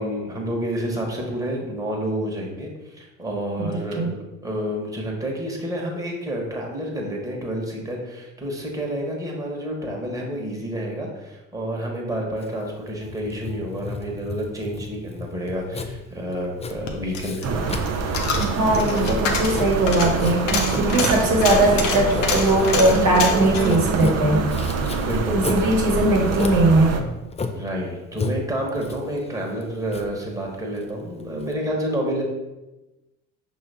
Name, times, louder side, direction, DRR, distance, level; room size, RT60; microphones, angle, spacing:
voice 1, 0.0-4.1 4.4-17.6 25.0-25.6 27.5-32.2, right 1 dB, 10° right, -2 dB, 1.2 m, -29 dB
voice 2, 3.6-4.1 18.5-24.4 25.3-26.9, right 1 dB, 60° right, -1 dB, 1.1 m, -20 dB
Writing, 12.4-31.5, left 3 dB, 20° left, 0.4 m, -34 dB
Coin (dropping), 16.6-25.1 25.4-25.5, left 5 dB, 90° left, 0.6 m, -28 dB
sound 1, 17.4-27.0, right 4 dB, 45° right, 0.6 m, -25 dB
5.5 x 2.7 x 3.4 m, 1.1 s
hypercardioid pair, 55°, 37 cm